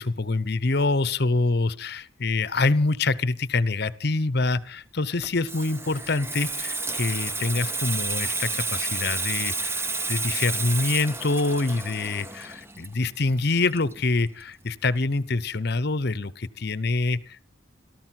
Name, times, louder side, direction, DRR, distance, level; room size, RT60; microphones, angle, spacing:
voice 1, 0.0-17.5, left 3 dB, 50° left, 18 dB, 0.9 m, -26 dB
Water tap faucet / Sink (filling or washing), 5.1-14.4 14.7-15.0, right 3 dB, 10° right, 0.7 m, -31 dB
17.0 x 14.0 x 5.9 m, 0.43 s
head